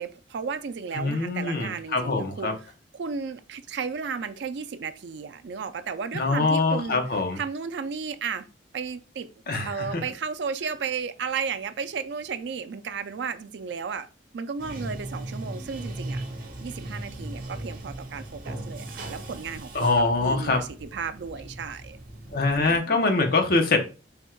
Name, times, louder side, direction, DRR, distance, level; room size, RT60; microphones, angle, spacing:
voice 1, 0.0-2.5 2.9-7.0 7.4-8.5 8.7-9.3 9.6-14.1 14.3-16.2 16.6-22.0 22.6-23.0, right 5 dB, 70° right, 0.4 m, -34 dB
voice 2, 0.9-2.5 6.1-7.4 9.5-10.0 19.7-20.6 22.3-23.8, left 3 dB, 55° left, 0.7 m, -24 dB
Bathtub (filling or washing), 14.6-22.8, right 1 dB, 50° right, 0.8 m, -38 dB
3.5 x 2.2 x 4.4 m
head